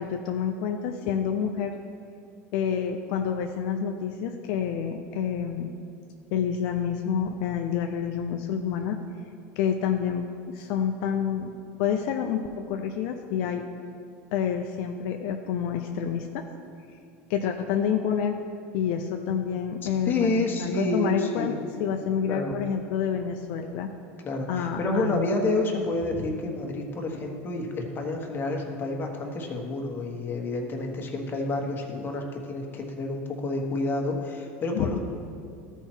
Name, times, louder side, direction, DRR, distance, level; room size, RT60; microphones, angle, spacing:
voice 1, 0.0-1.7 2.5-5.8 6.3-9.0 9.6-11.5 11.8-13.6 14.3-16.4 17.3-18.4 18.7-21.5 21.8-23.9 24.5-25.3 34.7-35.0, left 8 dB, 70° left, 4 dB, 0.5 m, -28 dB
voice 2, 19.8-21.6 22.3-22.6 24.2-35.0, left 2 dB, 30° left, 1 dB, 1.4 m, -29 dB
13.0 x 4.5 x 4.5 m, 2.5 s
supercardioid pair, 110°, 7 cm